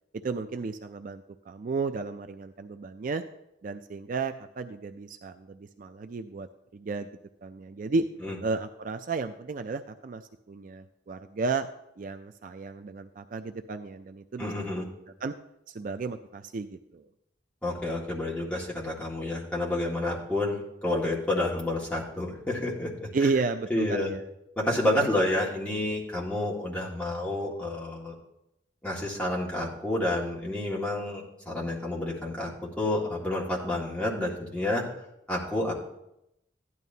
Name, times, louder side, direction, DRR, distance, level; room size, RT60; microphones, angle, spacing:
voice 1, 0.1-3.2 3.6-6.5 6.7-7.1 7.4-8.1 8.4-10.2 10.5-11.7 12.0-14.9 15.2-15.3 15.7-17.1 23.1-24.3 24.6-25.1, right 4 dB, 45° right, 8 dB, 0.4 m, -33 dB
voice 2, 14.4-14.8 17.6-23.1 23.7-24.1 24.6-28.1 28.8-32.5 32.8-34.8 35.3-35.7, left 1 dB, 5° left, -5 dB, 1.8 m, -29 dB
15.0 x 11.0 x 2.8 m, 0.84 s
head